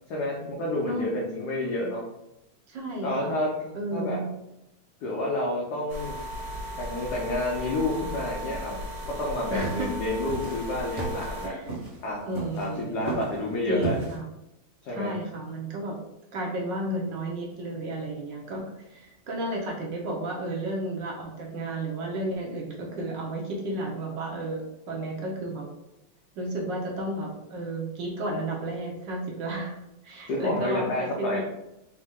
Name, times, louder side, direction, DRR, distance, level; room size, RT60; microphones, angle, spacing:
voice 1, 0.1-2.1 3.0-4.2 5.0-6.2 6.8-8.8 9.1-11.6 12.0-12.2 12.6-14.0 14.8-15.2 30.3-31.4, left 1 dB, 65° left, -3 dB, 1.0 m, -29 dB
voice 2, 2.7-3.4 3.7-4.3 9.5-9.9 11.4-11.7 12.3-13.1 13.7-14.3 14.9-16.0 16.3-25.7 26.4-29.7 30.0-31.4, right 1 dB, 65° right, -1 dB, 1.4 m, -32 dB
sound 1, 5.9-11.5, equal, 80° right, 1.7 m, -36 dB
sound 2, 9.2-14.2, right 2 dB, 40° right, 0.4 m, -34 dB
4.2 x 2.7 x 3.6 m, 0.88 s
omnidirectional pair, 2.4 m